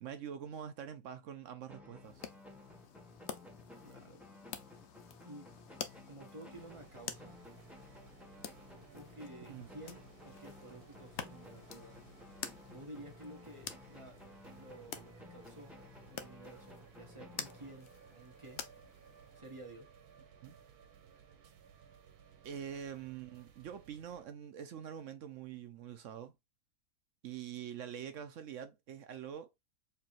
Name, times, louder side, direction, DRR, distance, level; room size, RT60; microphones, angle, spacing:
voice 1, 0.0-2.3 9.5-9.7 20.4-20.6 21.4-21.5 22.4-26.3 27.2-29.5, right 8 dB, 65° right, 0.8 m, -45 dB
sound 1, 1.7-18.2, left 2 dB, ahead, 1.0 m, -56 dB
sound 2, 2.0-19.4, left 8 dB, 60° left, 0.8 m, -50 dB
voice 2, 3.8-4.3 5.2-5.5 6.1-7.5 8.8-12.0 12.7-14.2 14.5-15.8 16.1-18.7 19.3-19.9, right 1 dB, 30° right, 0.7 m, -52 dB
sound 3, 6.5-24.2, right 7 dB, 80° right, 1.3 m, -60 dB
4.5 x 3.3 x 2.4 m
omnidirectional pair, 1.6 m